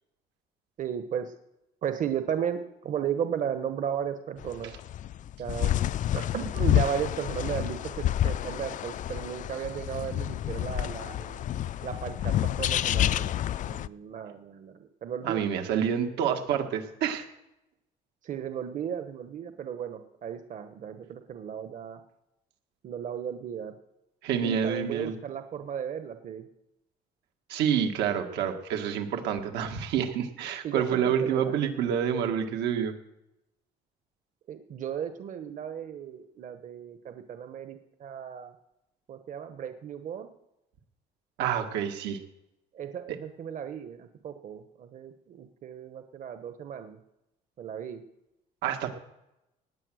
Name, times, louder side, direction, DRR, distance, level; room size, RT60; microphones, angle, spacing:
voice 1, 0.8-1.3 1.8-4.7 5.4-5.7 6.1-11.4 11.8-13.3 13.7-15.4 16.2-16.3 18.2-22.0 22.8-23.7 24.4-26.5 30.6-31.5 34.5-38.5 39.1-40.3 42.7-47.0 47.6-48.0, right 8 dB, 50° right, 8 dB, 1.2 m, -35 dB
sound 1, 4.4-13.9, left 12 dB, 50° left, 0.4 m, -29 dB
voice 2, 15.2-17.3 24.2-25.1 27.5-32.9 41.4-42.2 48.6-48.9, right 8 dB, 85° right, 5 dB, 1.9 m, -28 dB
18.5 x 8.8 x 6.4 m, 0.89 s
cardioid pair, 110°, 17 cm